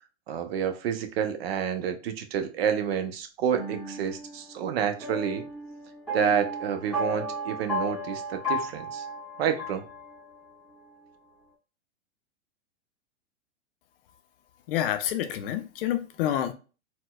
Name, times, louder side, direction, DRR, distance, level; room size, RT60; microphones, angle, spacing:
voice 1, 0.3-5.5 6.1-9.0 9.4-9.8, right 8 dB, 60° right, 0.7 m, -29 dB
sound 1, 3.6-10.5, equal, 5° right, 1.5 m, -35 dB
voice 2, 14.7-16.5, left 11 dB, 50° left, 0.6 m, -28 dB
4.1 x 2.2 x 2.3 m
hypercardioid pair, 110°, 35 cm